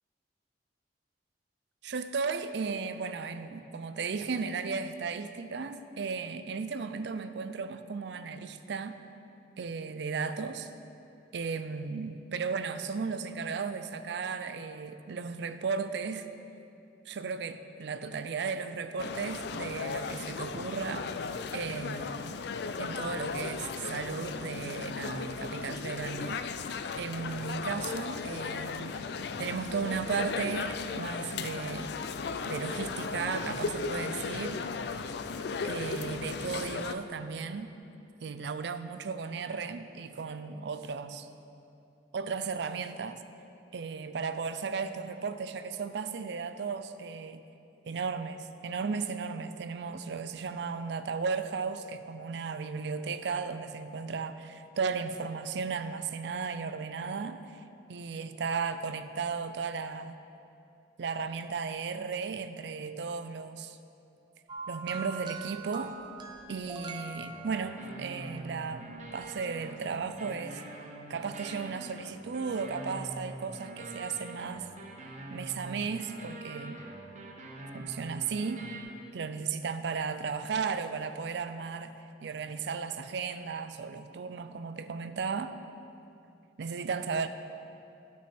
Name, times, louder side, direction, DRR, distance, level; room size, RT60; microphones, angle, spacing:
voice 1, 1.8-9.0 9.6-10.7 11.3-16.3 17.1-21.1 21.5-22.4 22.8-26.5 27.0-29.0 29.4-31.9 32.4-34.6 35.6-37.7 38.2-41.3 42.1-43.2 43.7-47.4 47.9-57.6 57.9-60.2 61.0-63.8 64.7-66.0 66.5-70.6 71.1-74.7 75.3-76.8 77.7-78.7 79.1-81.9 82.2-85.6 86.6-87.3, right 5 dB, 65° right, 11 dB, 0.4 m, -35 dB
sound 1, 19.0-36.9, left 5 dB, 65° left, 0.4 m, -36 dB
sound 2, 64.5-68.0 69.1-69.2, right 4 dB, 25° right, 0.6 m, -42 dB
sound 3, 67.3-78.8, right 1 dB, 40° right, 0.9 m, -45 dB
11.5 x 6.2 x 4.3 m, 2.7 s
head